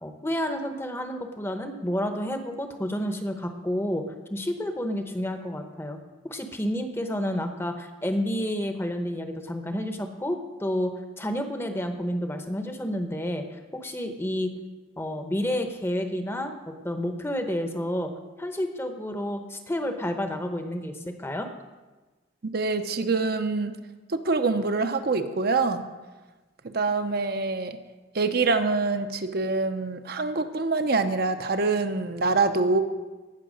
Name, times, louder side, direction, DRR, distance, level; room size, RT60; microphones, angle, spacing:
voice 1, 0.0-6.0 6.2-14.5 15.0-18.1 18.4-20.9 21.2-21.5, equal, 10° left, 6 dB, 0.8 m, -30 dB
voice 2, 22.4-23.7 24.1-25.8 26.6-27.8 28.1-32.8, right 3 dB, 50° right, 8 dB, 0.7 m, -25 dB
17.0 x 5.8 x 6.4 m, 1.2 s
head